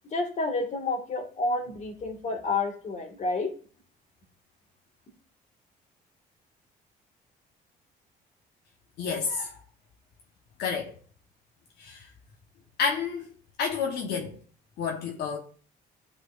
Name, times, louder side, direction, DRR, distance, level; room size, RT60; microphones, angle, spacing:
voice 1, 0.1-3.5, left 3 dB, 45° left, 1.9 m, -29 dB
voice 2, 9.0-9.5 10.6-10.9 11.8-12.0 12.8-13.3 13.6-14.4 14.8-15.4, left 5 dB, 75° left, 1.3 m, -29 dB
12.0 x 4.4 x 2.6 m
cardioid pair, 110°, 17 cm